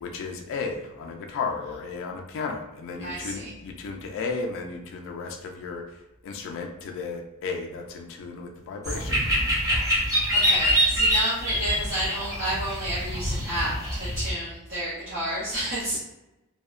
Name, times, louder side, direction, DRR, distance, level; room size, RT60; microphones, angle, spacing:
voice 1, 0.0-5.8 6.2-9.2, left 4 dB, 60° left, 3 dB, 0.3 m, -34 dB
voice 2, 3.0-3.5 9.8-10.0 10.3-16.0, right 1 dB, 55° right, -10 dB, 0.7 m, -31 dB
sound 1, 8.8-14.3, equal, 15° right, 0.6 m, -25 dB
2.7 x 2.1 x 2.3 m, 0.97 s
head